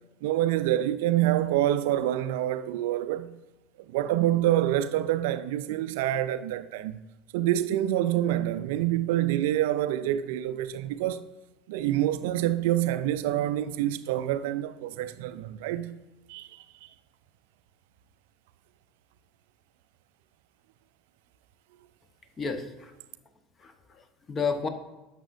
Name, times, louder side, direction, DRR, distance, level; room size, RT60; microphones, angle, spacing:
voice 1, 0.2-3.3 3.9-7.0 7.3-11.2 11.7-15.9 16.3-16.6, right 13 dB, 65° right, 0.3 m, -26 dB
voice 2, 22.4-22.9 23.6-24.7, left 5 dB, 30° left, 1.0 m, -32 dB
11.0 x 6.8 x 2.6 m
figure-of-eight pair, 70°, 0 cm